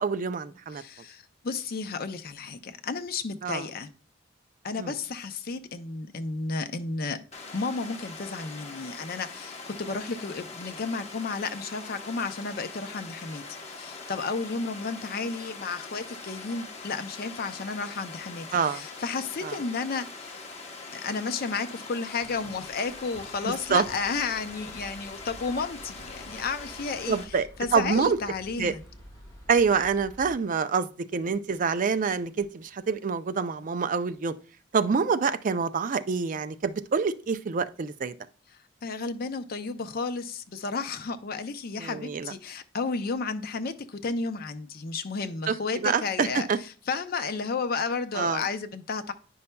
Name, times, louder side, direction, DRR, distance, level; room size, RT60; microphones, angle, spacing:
voice 1, 0.0-0.8 3.4-3.7 4.8-4.9 18.5-18.8 19.4-19.6 23.5-23.8 27.1-27.5 27.7-28.2 28.6-28.7 29.5-34.3 34.7-38.1 41.8-42.3 45.5-46.6 48.1-48.4, right 5 dB, 45° right, 0.4 m, -26 dB
voice 2, 0.7-3.9 4.6-7.2 7.5-20.1 20.9-27.2 27.6-28.8 38.8-46.5 46.9-49.1, left 4 dB, 50° left, 0.6 m, -32 dB
Water, 7.3-27.2, left 3 dB, 35° left, 0.9 m, -42 dB
sound 1, 22.2-30.3, equal, 20° left, 3.4 m, -50 dB
9.4 x 5.4 x 2.2 m
head